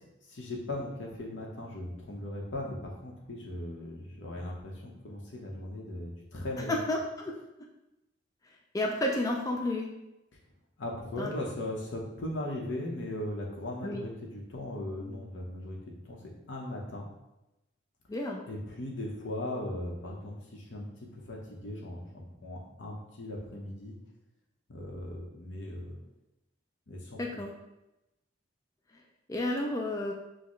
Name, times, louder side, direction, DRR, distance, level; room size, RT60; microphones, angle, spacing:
voice 1, 0.3-6.8 10.8-15.8 16.0-16.2 16.5-17.1 18.5-24.0 24.7-26.0 26.9-27.2, left 1 dB, 75° left, -1 dB, 0.9 m, -38 dB
voice 2, 6.7-7.0 7.2-7.3 8.7-9.9 11.2-11.3 13.8-14.0 18.1-18.4 27.2-27.5 29.3-30.1, left 1 dB, 20° left, 0 dB, 0.3 m, -31 dB
6.4 x 2.2 x 3.1 m, 0.95 s
head